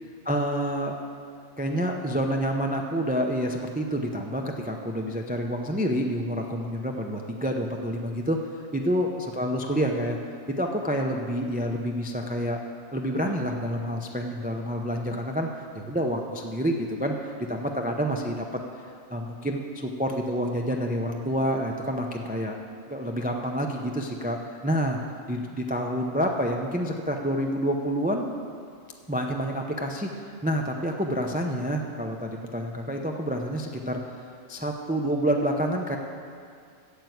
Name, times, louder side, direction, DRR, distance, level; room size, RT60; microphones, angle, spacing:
voice 1, 0.2-1.0 1.6-10.2 10.5-12.6 12.9-15.5 15.7-18.5 19.1-22.6 22.9-25.0 25.3-28.3 29.1-34.0 34.5-36.0, equal, 10° right, 2 dB, 0.4 m, -28 dB
9.1 x 7.2 x 7.9 m, 2.3 s
omnidirectional pair, 1.4 m